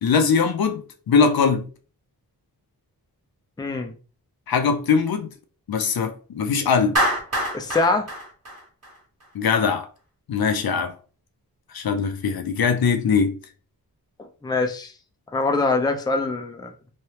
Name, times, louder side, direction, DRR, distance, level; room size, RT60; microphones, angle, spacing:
voice 1, 0.0-1.6 4.5-5.3 5.7-7.0 9.3-9.9 10.3-10.9 11.7-13.4, left 5 dB, 65° left, 0.6 m, -21 dB
voice 2, 3.6-3.9 7.5-8.1 14.2-14.9 15.3-16.7, left 3 dB, 10° left, 0.4 m, -24 dB
Clapping, 7.0-9.3, equal, 40° right, 1.4 m, -25 dB
3.3 x 2.3 x 2.8 m
cardioid pair, 65°, 39 cm